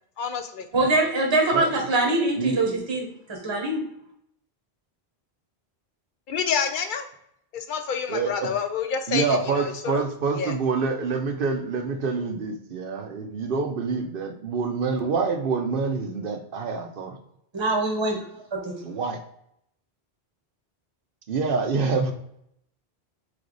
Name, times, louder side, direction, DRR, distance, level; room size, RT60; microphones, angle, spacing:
voice 1, 0.2-0.7 6.3-7.1 7.5-10.0 10.3-10.5, left 6 dB, 55° left, 7 dB, 0.7 m, -28 dB
voice 2, 0.7-3.8 17.5-18.2 18.5-18.7, right 2 dB, 30° right, 0 dB, 1.0 m, -23 dB
voice 3, 8.1-8.5 9.1-17.2 18.8-19.2 21.3-22.1, right 4 dB, 60° right, 5 dB, 0.9 m, -26 dB
3.8 x 3.3 x 3.9 m, 0.74 s
omnidirectional pair, 1.1 m